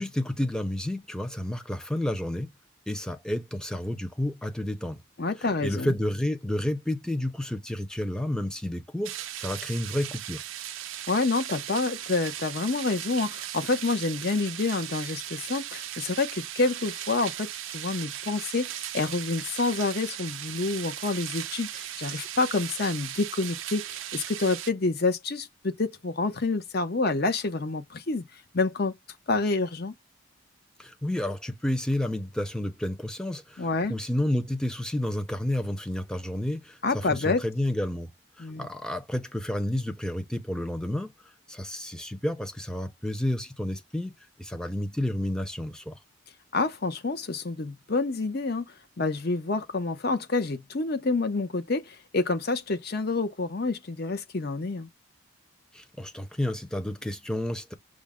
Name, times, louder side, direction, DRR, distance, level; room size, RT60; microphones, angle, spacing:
voice 1, 0.0-2.5 2.9-5.0 5.4-10.4 30.8-38.1 38.4-41.1 41.5-46.0 55.7-57.7, left 1 dB, 5° left, 0.4 m, -30 dB
voice 2, 5.2-5.9 11.1-28.2 28.5-28.9 29.3-29.9 33.6-33.9 36.8-37.4 38.4-38.7 46.5-48.6 49.0-54.9, left 3 dB, 50° left, 0.7 m, -28 dB
sound 1, 9.0-24.7, right 12 dB, 70° right, 0.4 m, -37 dB
6.3 x 2.1 x 3.5 m
head